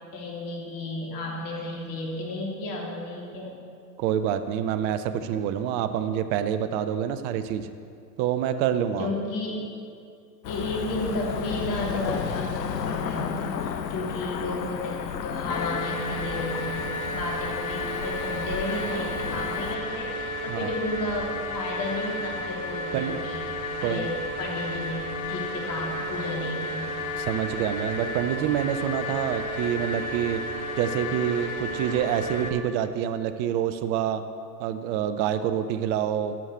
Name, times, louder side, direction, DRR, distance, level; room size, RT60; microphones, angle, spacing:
voice 1, 0.1-3.5 9.0-9.6 10.4-23.4 23.8-26.9, left 2 dB, 40° left, -2 dB, 3.2 m, -32 dB
voice 2, 4.0-7.7 8.2-9.1 20.5-20.7 22.9-23.2 23.8-24.1 27.2-30.4 30.8-34.2 34.6-36.3, right 9 dB, 25° right, 11 dB, 0.3 m, -27 dB
Cricket / Motor vehicle (road), 10.4-19.8, left 7 dB, 80° left, 0.8 m, -33 dB
sound 1, 15.5-32.5, left 1 dB, 55° left, 1.3 m, -33 dB
11.5 x 6.3 x 7.9 m, 2.4 s
hypercardioid pair, 95°, 50 cm